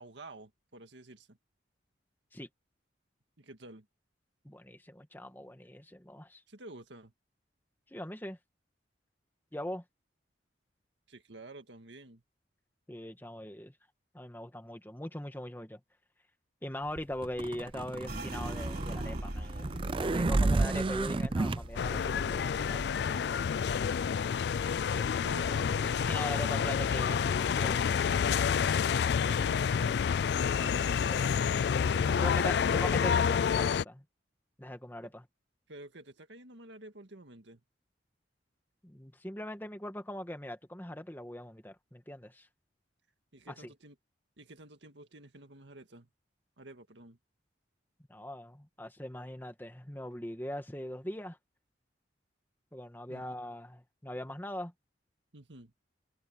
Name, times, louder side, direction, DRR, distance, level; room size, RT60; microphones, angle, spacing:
voice 1, 0.0-1.4 3.4-3.9 6.5-7.1 11.1-12.2 25.2-26.5 29.1-30.0 31.9-32.6 35.7-37.6 43.3-44.0 44.4-46.1 46.6-47.2 53.1-53.3 55.3-55.7, right 2 dB, 75° right, 1.9 m, -50 dB
voice 2, 4.4-6.4 7.9-8.4 9.5-9.8 12.9-13.7 14.1-15.8 16.6-23.3 24.9-25.1 25.8-28.0 30.5-34.0 34.6-35.2 38.8-42.5 43.5-43.7 48.1-51.4 52.7-54.7, left 1 dB, 10° left, 1.8 m, -41 dB
sound 1, 17.0-21.6, right 2 dB, 30° right, 0.4 m, -31 dB
sound 2, 18.1-27.5 27.8-29.0 29.3-29.8 30.2-30.8, right 1 dB, 55° right, 3.8 m, -44 dB
sound 3, 21.8-33.8, left 7 dB, 60° left, 0.3 m, -28 dB
head